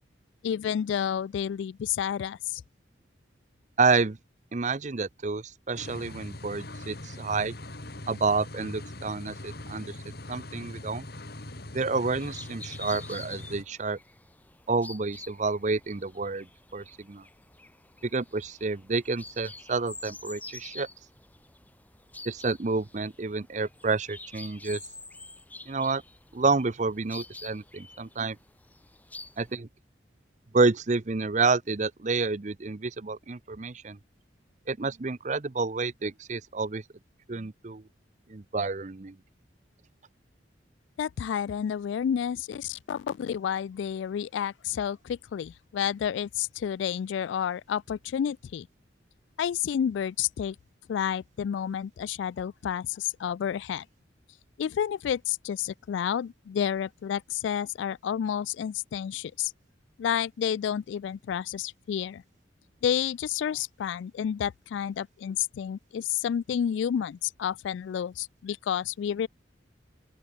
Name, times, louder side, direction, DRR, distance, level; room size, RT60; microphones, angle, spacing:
voice 1, 0.4-2.6 41.0-48.7 49.4-50.6 50.9-53.9 54.6-59.5 60.0-62.2 62.8-69.3, left 8 dB, 80° left, 0.3 m, -30 dB
voice 2, 3.8-4.2 4.5-7.5 8.1-11.0 11.7-14.0 14.7-16.5 16.7-17.2 18.0-20.9 22.3-24.8 25.7-26.0 26.3-28.4 29.4-29.7 30.5-34.0 34.7-36.8 37.3-37.8 38.3-39.2, right 4 dB, 40° right, 0.6 m, -29 dB
sound 1, 5.7-13.6, left 1 dB, 55° left, 2.6 m, -41 dB
sound 2, 12.2-29.5, left 2 dB, 10° left, 3.0 m, -47 dB
open air
head